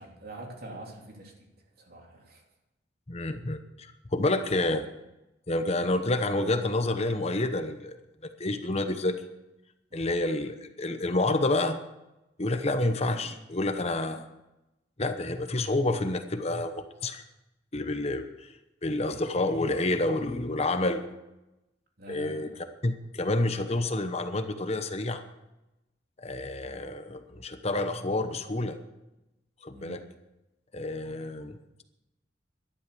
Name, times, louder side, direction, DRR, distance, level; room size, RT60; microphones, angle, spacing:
voice 1, 0.0-1.5 1.8-2.4 9.9-10.1 22.0-22.6 29.7-30.0, right 1 dB, 55° right, 0 dB, 3.4 m, -45 dB
voice 2, 3.1-4.8 5.5-8.0 8.4-9.1 9.9-11.8 12.4-14.2 15.0-17.2 17.7-18.5 18.8-21.0 22.1-22.5 22.8-25.2 26.2-28.8 29.6-30.0 30.7-31.6, left 2 dB, 35° left, 8 dB, 0.9 m, -29 dB
13.0 x 11.0 x 6.9 m, 0.96 s
head